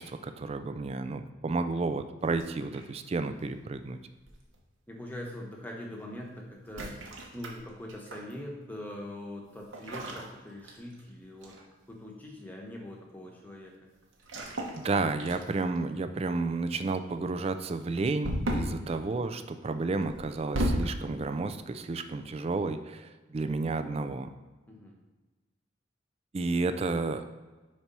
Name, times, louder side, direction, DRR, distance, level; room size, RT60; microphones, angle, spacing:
voice 1, 0.0-4.0 14.7-24.3 26.3-27.2, right 3 dB, 30° right, 9 dB, 0.3 m, -31 dB
sound 1, 2.3-3.1 4.3-4.6 6.6-8.3 9.7-11.1 11.4-11.7 14.2-14.9 15.2-15.8 18.2-18.8 20.0-21.0, equal, 90° right, 1.1 m, -34 dB
voice 2, 4.9-7.1 7.3-13.9 18.6-18.9 24.7-25.0, left 1 dB, 10° left, -1 dB, 1.0 m, -43 dB
4.6 x 4.3 x 5.3 m, 1.3 s
head